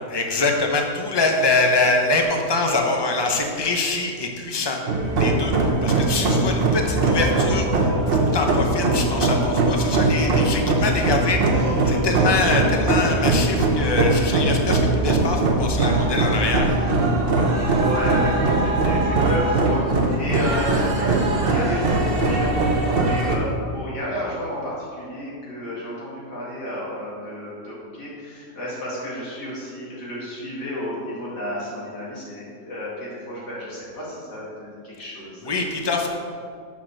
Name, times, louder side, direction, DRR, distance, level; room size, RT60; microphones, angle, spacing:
voice 1, 0.1-4.8 5.2-16.8 35.4-36.1, left 3 dB, 30° left, 2 dB, 0.5 m, -24 dB
sound 1, 4.9-23.4, right 2 dB, 45° right, 0.9 m, -21 dB
voice 2, 17.7-34.4 34.8-35.5, equal, 90° left, -7 dB, 3.1 m, -31 dB
6.4 x 5.8 x 6.5 m, 2.2 s
omnidirectional pair, 1.7 m